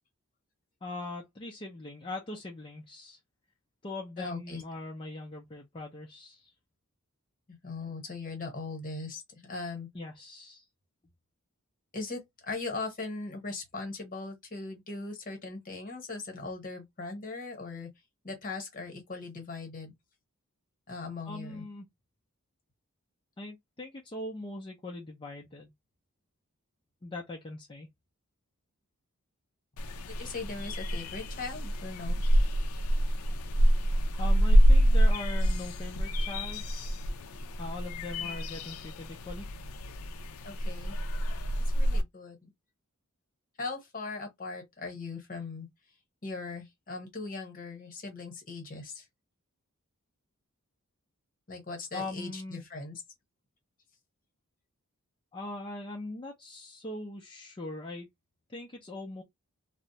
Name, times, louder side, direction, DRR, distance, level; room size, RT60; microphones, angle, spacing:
voice 1, 0.8-3.2 3.8-6.5 9.9-10.6 21.3-21.9 23.4-25.7 27.0-27.9 34.2-37.0 37.6-39.5 51.9-52.6 55.3-58.1 58.5-59.2, left 2 dB, 25° left, 0.5 m, -41 dB
voice 2, 4.2-4.6 7.5-9.9 11.9-17.9 18.2-19.9 20.9-21.6 30.2-32.2 38.2-38.4 40.4-40.9 41.7-42.4 43.6-45.7 46.2-49.0 51.5-53.0, left 3 dB, 40° left, 1.1 m, -39 dB
sound 1, 29.8-42.0, equal, 80° left, 0.4 m, -26 dB
2.3 x 2.0 x 2.7 m
head